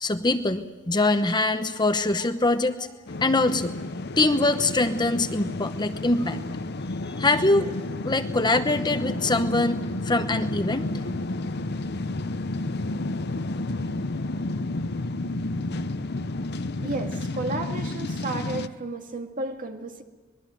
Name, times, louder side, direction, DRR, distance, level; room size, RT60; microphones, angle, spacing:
voice 1, 0.0-2.9 3.2-3.8 4.2-6.4 7.0-7.7 8.0-11.1, left 2 dB, 20° left, 0.9 m, -23 dB
sound 1, 3.1-18.7, left 2 dB, 50° left, 0.8 m, -31 dB
voice 2, 16.8-20.0, right 2 dB, 40° right, 2.1 m, -32 dB
24.5 x 21.5 x 7.8 m
head